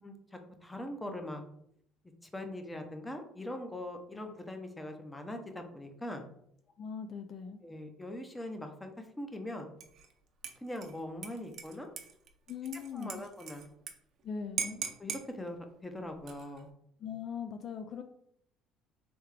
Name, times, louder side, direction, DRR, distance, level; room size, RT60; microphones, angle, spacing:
voice 1, 0.0-1.4 2.3-6.3 7.6-9.7 10.6-11.9 12.9-13.7 15.0-16.7, left 1 dB, 10° left, 5 dB, 0.7 m, -41 dB
voice 2, 6.8-7.6 12.5-13.2 14.2-14.8 17.0-18.0, left 6 dB, 50° left, 7 dB, 0.3 m, -40 dB
Dishes pots and pans / Liquid, 9.8-10.1 10.4-13.9 14.2-14.3 14.6-15.2 16.1-16.6, right 7 dB, 55° right, 0.6 m, -40 dB
3.5 x 3.5 x 3.3 m, 0.72 s
cardioid pair, 105°, 0 cm